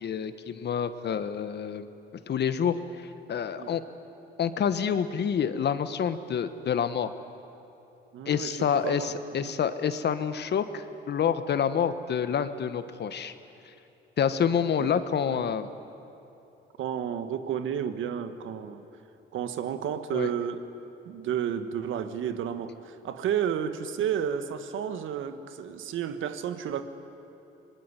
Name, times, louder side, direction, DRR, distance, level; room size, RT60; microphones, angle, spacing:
voice 1, 0.0-1.9 2.3-3.8 4.4-7.1 8.3-13.3 14.2-15.7 20.1-20.3, left 7 dB, 60° left, 11 dB, 1.4 m, -28 dB
voice 2, 8.1-8.5 8.8-9.1 9.4-9.5 14.8-14.9 15.3-15.5 16.8-18.8 19.3-20.6 21.0-26.8, right 9 dB, 80° right, 9 dB, 1.5 m, -31 dB
24.0 x 21.0 x 9.8 m, 2.8 s
cardioid pair, 90°, 20 cm